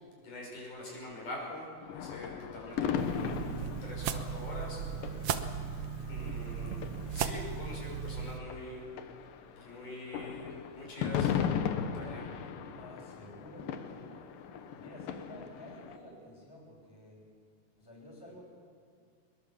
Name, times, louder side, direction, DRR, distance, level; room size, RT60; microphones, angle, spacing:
voice 1, 0.2-1.7 1.9-3.3 3.8-5.1 6.1-6.8 7.1-8.8 9.6-12.3, left 2 dB, 60° left, -2 dB, 7.6 m, -44 dB
sound 1, 1.8-8.2 8.5-16.0, left 8 dB, 80° left, 2.8 m, -37 dB
sound 2, 3.0-8.4, right 7 dB, 70° right, 1.5 m, -36 dB
voice 2, 12.8-14.1 14.7-17.2 17.8-18.4, left 1 dB, 5° left, -2 dB, 5.6 m, -51 dB
23.0 x 22.0 x 7.3 m, 2.1 s
omnidirectional pair, 4.0 m